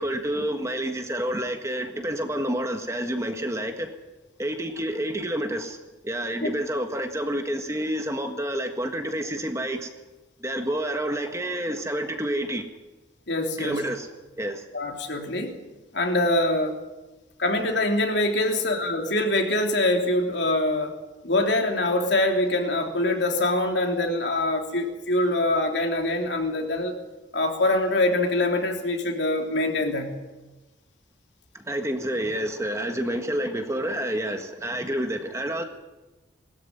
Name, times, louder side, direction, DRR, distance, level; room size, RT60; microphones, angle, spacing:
voice 1, 0.0-3.9 4.4-5.8 6.0-9.9 10.4-12.6 13.6-14.1 14.4-14.6 31.5-35.6, right 1 dB, 15° right, 5 dB, 1.5 m, -29 dB
voice 2, 13.3-13.8 14.7-15.6 15.9-16.8 17.4-20.9 21.2-26.9 27.3-30.1, left 2 dB, 70° left, 3 dB, 3.2 m, -24 dB
20.5 x 13.5 x 9.5 m, 1.1 s
head